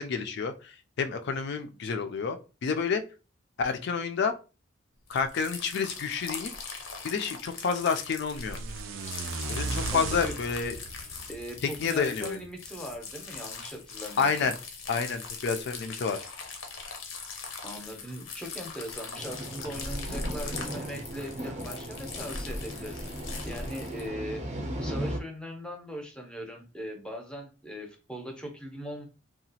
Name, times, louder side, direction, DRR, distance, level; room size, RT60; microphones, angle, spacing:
voice 1, 0.0-3.0 3.6-4.3 5.1-6.5 7.0-8.6 9.5-10.8 11.8-12.4 14.2-14.5 14.9-16.2, left 5 dB, 60° left, 8 dB, 0.4 m, -29 dB
sound 1, 5.1-24.1, left 4 dB, 90° left, 0.7 m, -40 dB
sound 2, 8.3-12.4, right 4 dB, 90° right, 0.4 m, -36 dB
voice 2, 9.9-10.3 11.3-14.5 17.6-24.4 24.8-29.1, equal, 5° left, 2 dB, 0.6 m, -40 dB
sound 3, 19.2-25.2, right 1 dB, 35° right, 0.5 m, -37 dB
2.8 x 2.3 x 2.7 m, 0.32 s
head